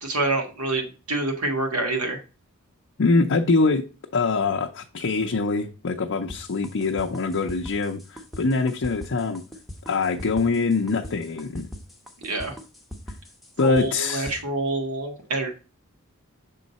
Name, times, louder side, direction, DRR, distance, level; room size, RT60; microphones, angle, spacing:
voice 1, 0.0-2.2 12.2-12.5 13.6-15.5, right 2 dB, 75° right, 1.7 m, -26 dB
voice 2, 3.0-3.9 4.1-9.4 9.9-11.7 13.6-14.4, left 4 dB, 60° left, 0.6 m, -24 dB
sound 1, 6.3-14.4, left 1 dB, ahead, 1.0 m, -40 dB
6.4 x 3.8 x 4.0 m
head